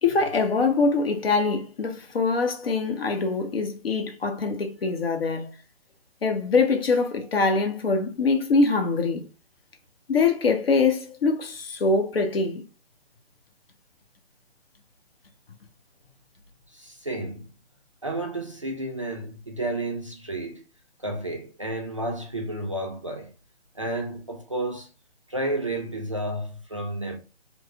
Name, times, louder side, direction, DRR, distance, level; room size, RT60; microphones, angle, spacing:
voice 1, 0.0-5.5 6.2-9.2 10.1-12.6, left 4 dB, 60° left, 0.9 m, -23 dB
voice 2, 16.7-17.5 18.0-20.6 21.0-23.3 23.7-24.9 25.3-27.2, right 1 dB, 30° right, 0.4 m, -31 dB
3.1 x 2.0 x 3.3 m
hypercardioid pair, 155°, 33 cm